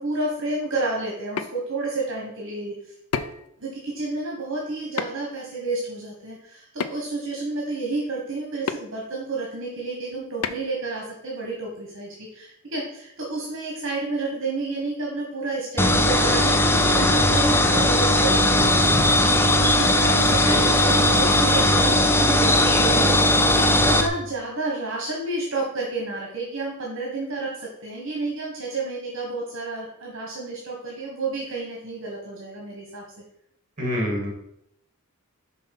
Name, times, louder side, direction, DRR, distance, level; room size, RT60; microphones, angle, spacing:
voice 1, 0.0-2.9 3.6-18.9 19.6-33.0, right 3 dB, 60° right, -2 dB, 1.5 m, -30 dB
sound 1, 1.1-1.5 3.1-3.5 5.0-5.3 6.8-7.2 8.7-8.8 10.4-10.7, left 6 dB, 85° left, 0.5 m, -29 dB
sound 2, 15.8-24.1, left 1 dB, 10° left, 0.5 m, -18 dB
voice 2, 20.4-20.8 22.9-23.1 33.8-34.3, equal, 40° right, 0 dB, 2.3 m, -28 dB
5.7 x 4.2 x 6.1 m, 0.77 s
head